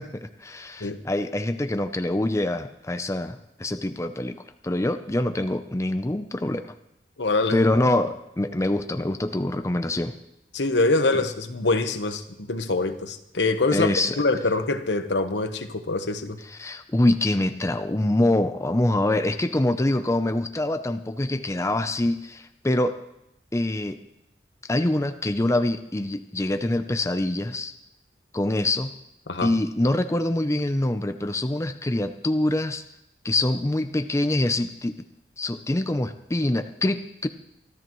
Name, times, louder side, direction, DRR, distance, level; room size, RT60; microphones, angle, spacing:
voice 1, 0.0-6.7 7.5-10.2 13.7-14.2 16.6-23.0 23.5-24.0 24.7-27.7 28.3-28.9 29.4-32.8 33.2-34.9 35.4-37.3, left 1 dB, 15° left, 9 dB, 0.6 m, -25 dB
voice 2, 7.2-7.6 10.5-16.4 29.3-29.5, left 3 dB, 80° left, 8 dB, 1.1 m, -24 dB
24.5 x 13.0 x 3.1 m, 0.82 s
head